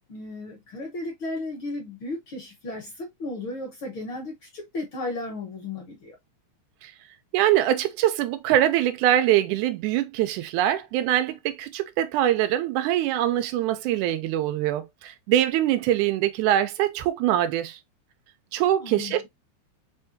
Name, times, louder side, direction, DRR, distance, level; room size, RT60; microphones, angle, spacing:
voice 1, 0.1-6.1 18.8-19.1, left 2 dB, 55° left, 1.5 m, -34 dB
voice 2, 7.3-17.8 18.5-19.3, right 12 dB, 85° right, 2.1 m, -23 dB
4.9 x 3.4 x 2.6 m
omnidirectional pair, 3.4 m